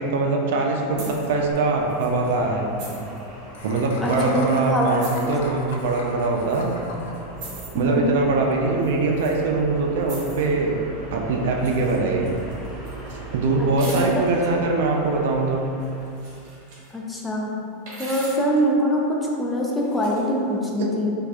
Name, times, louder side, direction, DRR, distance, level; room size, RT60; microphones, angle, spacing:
voice 1, 0.0-2.7 3.6-6.8 7.7-10.8 11.1-12.3 13.3-15.6, right 3 dB, 75° right, 0 dB, 0.4 m, -22 dB
sound 1, 0.9-16.1, right 2 dB, 25° right, 1.1 m, -40 dB
sound 2, 1.0-1.3 1.9-2.1 2.8-3.2 4.1-4.2 5.0-5.3 6.5-6.7 7.4-7.8 8.8-9.4 10.0-10.5 11.6-12.0 12.2-13.2 13.8-14.5 15.8-16.9 17.9-18.5 19.7-20.3, right 2 dB, 60° right, 1.2 m, -40 dB
Laughter, 1.5-1.6 1.9-2.0 2.2-2.4 3.5-7.2, left 3 dB, 75° left, 0.4 m, -38 dB
voice 2, 4.0-5.3 7.7-8.2 14.0-14.2 16.9-17.5 18.0-19.0 19.4-21.2, equal, 10° left, -3 dB, 0.5 m, -23 dB
4.6 x 2.4 x 2.4 m, 2.6 s
supercardioid pair, 120°, 0 cm